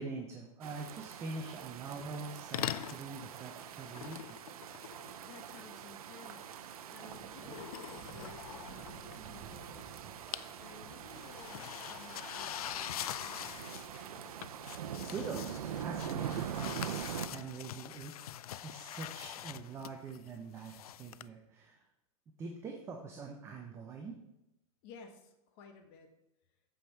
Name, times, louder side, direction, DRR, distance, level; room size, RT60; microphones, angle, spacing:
voice 1, 0.0-4.4 15.0-18.1 18.6-21.8 22.4-24.2, right 4 dB, 15° right, 2 dB, 0.7 m, -44 dB
sound 1, 0.6-17.3, right 9 dB, 80° right, 0.8 m, -44 dB
sound 2, 2.0-2.3 2.5-3.1 3.9-5.6 7.4-9.6 9.9-10.6 10.8-21.3, left 12 dB, 85° left, 0.4 m, -44 dB
voice 2, 5.2-10.0 10.6-14.3 24.8-26.1, left 5 dB, 40° left, 6 dB, 1.3 m, -56 dB
Thunder, 6.1-18.8 19.1-20.0 20.3-21.1, right 6 dB, 40° right, 1.3 m, -56 dB
14.0 x 5.2 x 4.6 m, 0.90 s
supercardioid pair, 155°, 18 cm